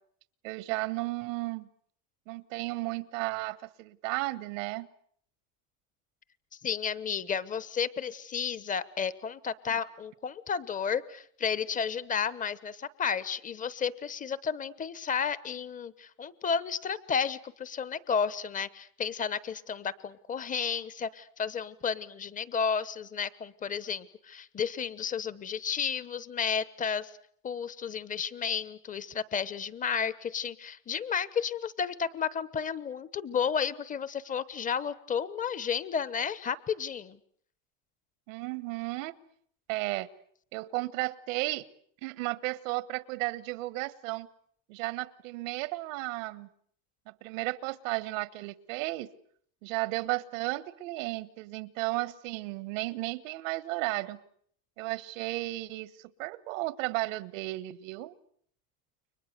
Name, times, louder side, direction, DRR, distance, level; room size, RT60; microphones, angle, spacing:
voice 1, 0.4-1.7 2.3-4.9 9.7-9.8 38.3-39.2 39.7-40.1 40.5-41.7 42.0-44.3 44.7-46.5 47.1-49.1 49.6-54.2 54.8-55.9 56.2-58.1, right 20 dB, 90° right, 17 dB, 1.4 m, -34 dB
voice 2, 6.6-27.1 27.4-37.2, left 6 dB, 20° left, 17 dB, 1.1 m, -32 dB
30.0 x 23.5 x 6.7 m, 0.63 s
cardioid pair, 150°, 38 cm